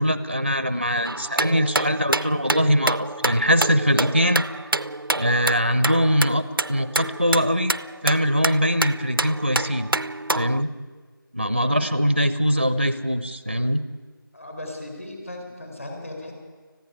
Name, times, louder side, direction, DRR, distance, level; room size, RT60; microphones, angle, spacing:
voice 1, 0.0-4.4 5.2-6.4 6.7-7.7 8.0-9.9 10.3-10.7 11.3-13.8, equal, 30° right, 13 dB, 0.7 m, -22 dB
sound 1, 1.0-10.6, right 2 dB, 70° right, 0.6 m, -27 dB
voice 2, 11.6-12.2 14.3-16.3, left 1 dB, 35° left, 2 dB, 4.2 m, -37 dB
20.0 x 15.0 x 9.8 m, 1.5 s
figure-of-eight pair, 175°, 12 cm